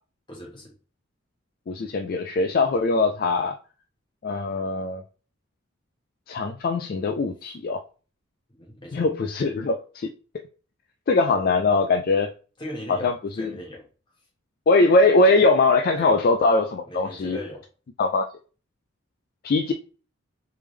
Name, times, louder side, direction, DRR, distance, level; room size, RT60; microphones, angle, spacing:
voice 1, 0.3-0.7 8.5-9.1 12.6-13.9 16.0-16.2 16.9-17.6, equal, 25° left, 1.5 m, -38 dB
voice 2, 1.7-3.5 4.2-5.0 6.3-7.8 8.9-10.1 11.1-12.3 12.9-13.5 14.7-17.4 18.0-18.3 19.4-19.7, left 3 dB, 45° left, 0.3 m, -21 dB
3.5 x 3.3 x 3.2 m
head